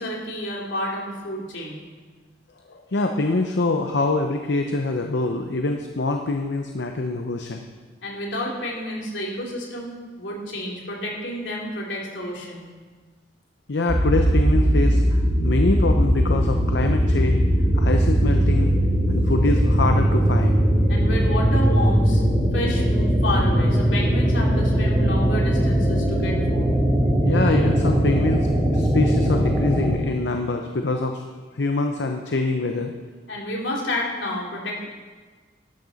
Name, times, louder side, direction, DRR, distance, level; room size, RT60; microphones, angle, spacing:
voice 1, 0.0-1.8 8.0-12.7 20.9-22.2 22.5-26.7 33.3-34.9, left 1 dB, 85° left, -2 dB, 2.8 m, -30 dB
voice 2, 2.7-7.7 13.7-17.4 17.8-18.7 19.1-20.6 27.2-31.2 31.5-32.9, left 2 dB, 70° left, 4 dB, 0.7 m, -25 dB
sound 1, 13.9-29.9, equal, 10° right, 3.1 m, -20 dB
12.0 x 11.5 x 4.1 m, 1.4 s
head